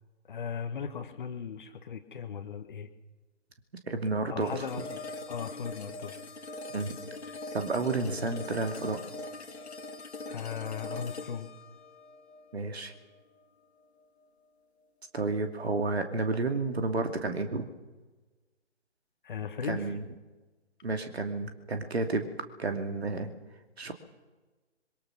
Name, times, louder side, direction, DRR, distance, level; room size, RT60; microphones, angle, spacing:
voice 1, 0.3-2.9 4.3-6.2 10.3-11.5 19.2-19.9, left 7 dB, 45° left, 8 dB, 1.5 m, -37 dB
voice 2, 3.9-4.6 6.7-7.0 7.5-9.0 12.5-12.9 15.1-17.7 19.7-20.0 20.8-22.3 22.6-23.3 23.8-23.9, right 3 dB, 60° right, 6 dB, 2.7 m, -31 dB
sound 1, 4.4-13.4, left 3 dB, 65° left, 2.2 m, -42 dB
25.5 x 22.5 x 6.1 m, 1.2 s
figure-of-eight pair, 140°, 35 cm